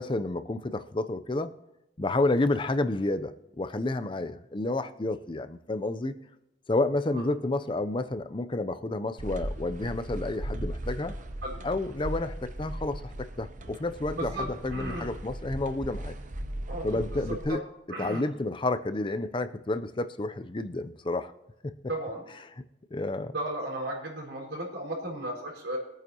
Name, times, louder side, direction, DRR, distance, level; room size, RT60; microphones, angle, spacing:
voice 1, 0.0-1.5 2.0-6.2 6.7-11.2 11.6-16.1 16.8-17.6 18.0-21.3 21.6-21.7 22.9-23.3, left 2 dB, 25° left, 11 dB, 0.4 m, -30 dB
sound 1, 9.2-17.5, right 1 dB, 40° right, 0.7 m, -37 dB
voice 2, 14.1-15.1 16.7-17.6 17.9-18.2 21.9-22.2 23.3-25.8, right 1 dB, 70° right, -4 dB, 4.3 m, -35 dB
23.0 x 8.9 x 2.8 m, 0.90 s
head